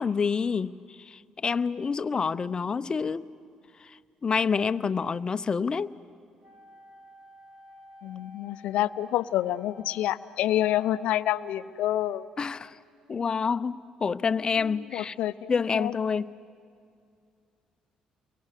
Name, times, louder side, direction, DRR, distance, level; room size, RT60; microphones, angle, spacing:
voice 1, 0.0-3.3 4.2-5.9 12.4-12.8 13.1-15.1 15.5-16.3, left 5 dB, 35° left, 0.8 m, -28 dB
Wind instrument woodwind instrument, 6.4-11.9, left 3 dB, 55° right, 5.9 m, -52 dB
voice 2, 8.0-12.3 14.6-15.9, left 13 dB, 75° left, 0.7 m, -28 dB
29.5 x 23.5 x 8.3 m
supercardioid pair, 60°, 2 cm